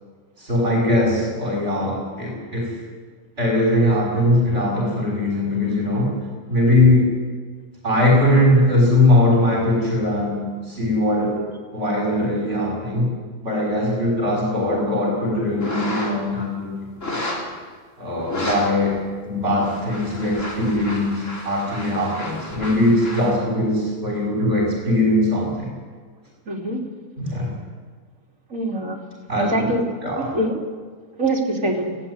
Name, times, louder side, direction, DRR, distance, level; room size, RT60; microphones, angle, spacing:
voice 1, 0.4-2.7 3.4-6.2 6.5-7.1 7.8-11.4 11.7-13.1 13.4-17.0 18.0-19.0 19.2-25.7 27.2-27.5 29.3-29.7 30.0-30.4, left 1 dB, 45° right, -3 dB, 6.0 m, -20 dB
sound 1, 15.6-16.3 17.0-17.5 18.2-18.6 18.9-19.0 19.5-23.3, left 1 dB, 60° left, 4.4 m, -31 dB
voice 2, 26.5-26.8 28.5-29.0 29.4-29.8 30.2-30.6 31.2-32.0, right 1 dB, 65° right, 0 dB, 3.4 m, -24 dB
19.0 x 16.0 x 9.7 m, 1.5 s
omnidirectional pair, 1.5 m